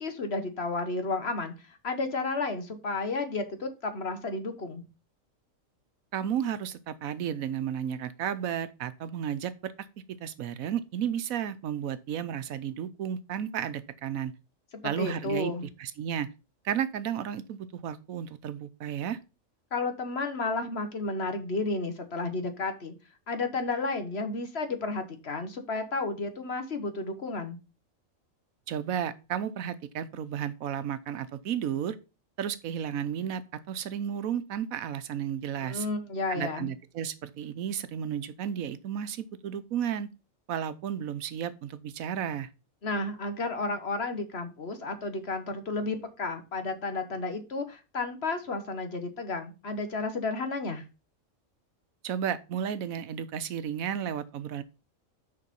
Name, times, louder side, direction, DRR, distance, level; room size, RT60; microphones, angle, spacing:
voice 1, 0.0-4.9 14.8-15.7 19.7-22.9 23.3-27.6 35.6-36.7 42.8-50.8, left 3 dB, 50° left, 1.6 m, -32 dB
voice 2, 6.1-9.9 10.2-14.3 14.8-15.5 15.8-16.3 16.6-19.2 28.7-32.0 32.4-35.9 36.3-40.1 40.5-42.5 52.0-54.6, right 9 dB, 85° right, 1.2 m, -33 dB
6.7 x 5.7 x 5.3 m
omnidirectional pair, 1.4 m